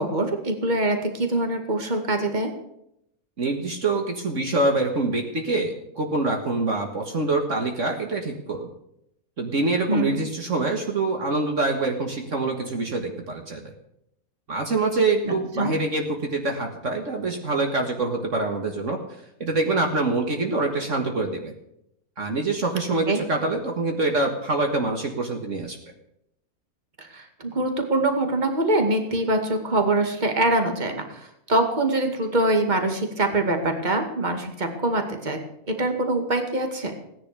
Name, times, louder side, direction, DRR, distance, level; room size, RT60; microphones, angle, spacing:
voice 1, 0.0-2.5 9.9-10.2 15.2-15.7 23.1-23.2 27.0-35.4 35.7-36.9, right 2 dB, 30° right, 5 dB, 2.3 m, -24 dB
voice 2, 3.4-8.7 9.4-13.7 14.5-21.5 22.2-25.8, right 3 dB, 55° right, 3 dB, 2.0 m, -25 dB
17.5 x 10.5 x 6.8 m, 0.79 s
omnidirectional pair, 1.5 m